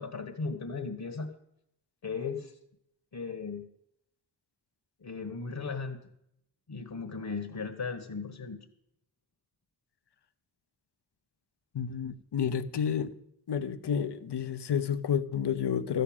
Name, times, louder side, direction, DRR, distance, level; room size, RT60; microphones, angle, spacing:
voice 1, 0.0-1.3 2.0-2.5 3.1-3.7 5.0-6.0 6.7-8.6, left 4 dB, 65° left, 1.4 m, -36 dB
voice 2, 11.7-13.1 13.5-16.0, left 8 dB, 90° left, 0.8 m, -30 dB
13.5 x 6.8 x 8.8 m
wide cardioid pair, 55°, 39 cm